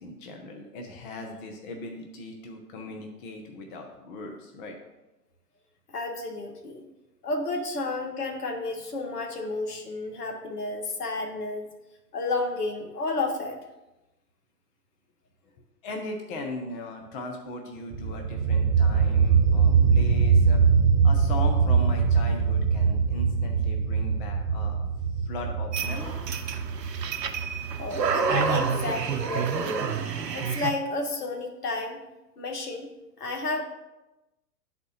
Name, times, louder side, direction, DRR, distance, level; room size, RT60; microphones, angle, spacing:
voice 1, 0.0-4.8 15.8-20.6 21.0-24.8 25.2-26.4, left 2 dB, 30° left, 3 dB, 0.7 m, -38 dB
voice 2, 5.9-6.8 7.2-11.7 12.1-13.6 27.8-30.0 30.3-32.0 32.4-32.9 33.2-33.6, left 3 dB, 65° left, 3 dB, 1.3 m, -31 dB
sound 1, 17.9-29.5, right 5 dB, 50° right, 1.1 m, -23 dB
sound 2, 25.7-30.7, right 6 dB, 75° right, 0.8 m, -29 dB
11.0 x 4.2 x 2.8 m, 1.0 s
figure-of-eight pair, 115°, 50 cm